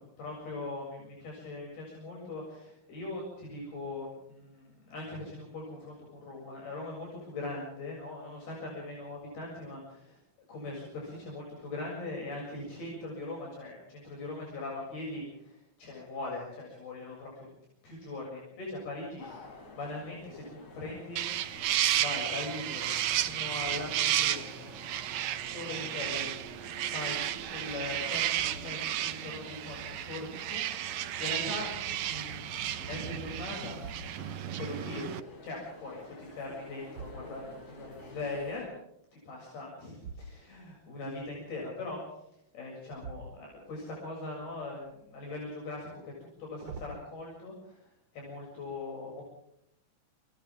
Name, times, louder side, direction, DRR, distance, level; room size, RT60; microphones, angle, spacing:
voice 1, 0.2-6.0 6.2-10.2 10.5-17.5 17.8-19.3 19.7-21.2 21.9-24.7 25.5-26.3 26.8-31.7 32.0-32.5 32.8-33.8 34.2-35.1 35.4-38.7 39.3-42.0 42.5-47.8 48.1-49.2, left 2 dB, 70° left, -2 dB, 9.2 m, -40 dB
sound 1, 19.2-38.7, left 2 dB, 40° left, 6.8 m, -51 dB
sound 2, 21.2-35.2, right 12 dB, 80° right, 1.5 m, -33 dB
sound 3, 33.7-34.6 36.2-37.9 40.0-40.8 42.9-44.0 44.4-45.1 46.2-47.1, right 4 dB, 35° right, 3.3 m, -48 dB
30.0 x 27.0 x 3.7 m, 0.77 s
omnidirectional pair, 4.6 m